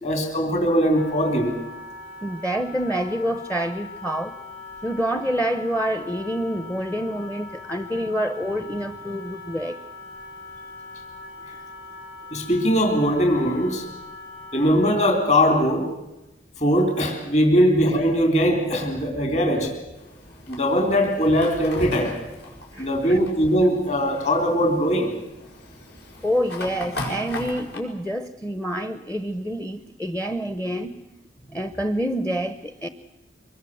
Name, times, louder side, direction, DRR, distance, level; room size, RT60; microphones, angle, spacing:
voice 1, 0.0-1.6 12.3-13.9 14.5-15.9 16.6-19.8 20.5-22.1 22.8-25.1, equal, 40° left, 4 dB, 3.8 m, -20 dB
Wind instrument woodwind instrument, 0.9-15.0, left 3 dB, 85° left, 6.3 m, -41 dB
voice 2, 2.2-4.4 4.8-9.8 11.5-11.6 22.7-23.2 26.2-31.0 31.5-32.9, equal, 10° left, 11 dB, 0.8 m, -27 dB
Fire, 19.9-27.8, left 1 dB, 65° left, 6.3 m, -37 dB
24.5 x 22.0 x 7.9 m, 0.96 s
head